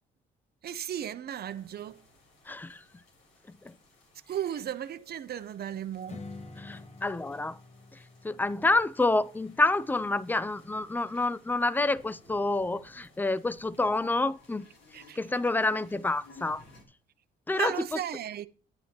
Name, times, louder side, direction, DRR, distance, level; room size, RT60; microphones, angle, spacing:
voice 1, 0.6-2.0 4.3-6.2 14.9-15.2 17.5-18.5, right 10 dB, 50° right, 0.7 m, -35 dB
sound 1, 1.4-16.8, left 1 dB, 80° left, 3.8 m, -61 dB
voice 2, 2.5-2.8 3.5-3.8 6.6-7.6 7.9-14.7 15.2-16.6 17.5-17.7, left 2 dB, 10° left, 0.4 m, -28 dB
Strum, 6.1-11.3, left 3 dB, 35° left, 1.4 m, -49 dB
sound 2, 11.0-11.3 13.9-16.8 17.7-17.8, left 4 dB, 60° left, 3.2 m, -56 dB
11.5 x 9.4 x 2.9 m
cardioid pair, 90°, 20 cm